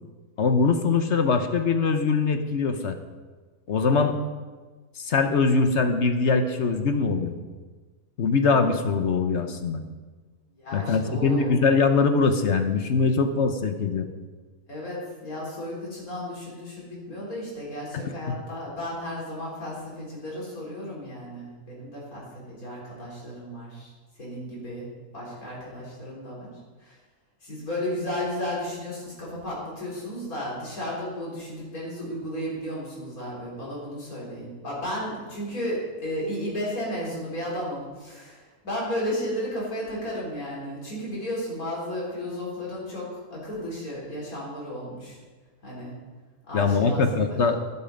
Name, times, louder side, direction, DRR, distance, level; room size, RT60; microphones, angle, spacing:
voice 1, 0.4-3.0 3.7-4.2 5.0-7.4 8.2-9.8 10.7-14.1 17.9-18.4 46.5-47.6, left 4 dB, 55° left, 7 dB, 1.1 m, -22 dB
voice 2, 10.6-11.5 14.7-23.9 24.2-24.9 25.1-26.5 26.8-26.9 27.4-45.2 45.6-45.9 46.5-47.4, left 1 dB, 75° left, -5 dB, 4.5 m, -34 dB
12.0 x 11.0 x 5.3 m, 1.4 s
omnidirectional pair, 1.5 m